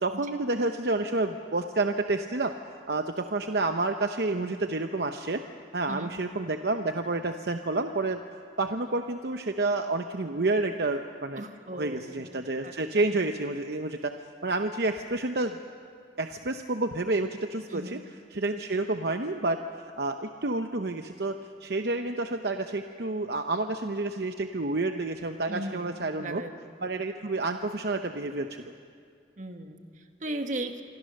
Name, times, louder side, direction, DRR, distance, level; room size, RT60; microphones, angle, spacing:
voice 1, 0.0-2.5 2.9-5.4 5.7-8.2 8.6-11.4 11.8-14.1 14.4-15.6 16.2-18.0 18.3-19.6 20.0-26.4 26.8-28.6, right 2 dB, 60° right, 6 dB, 0.8 m, -29 dB
voice 2, 11.4-13.1 17.7-18.0 25.5-26.5 29.4-30.8, right 1 dB, 40° right, 6 dB, 1.5 m, -38 dB
27.0 x 23.5 x 6.6 m, 2.2 s
head